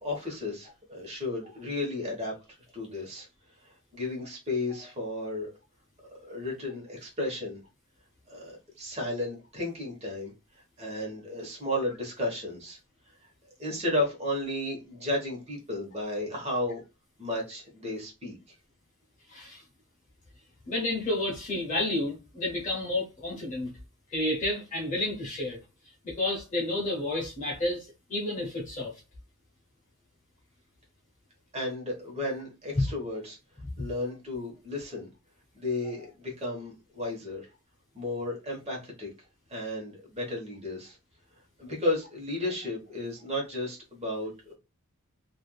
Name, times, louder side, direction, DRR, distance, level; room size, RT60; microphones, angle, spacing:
voice 1, 0.0-3.3 3.9-5.5 6.3-7.6 8.3-10.3 10.8-12.8 13.6-16.8 17.2-18.4 31.5-33.4 33.8-35.1 35.5-37.5 37.9-39.1 39.5-41.0 41.6-44.5, left 1 dB, 30° right, 1.2 m, -33 dB
voice 2, 19.3-19.6 20.7-23.7 24.1-25.6 26.0-29.0 32.8-32.9, left 2 dB, 35° left, 0.8 m, -30 dB
3.3 x 2.5 x 2.3 m
head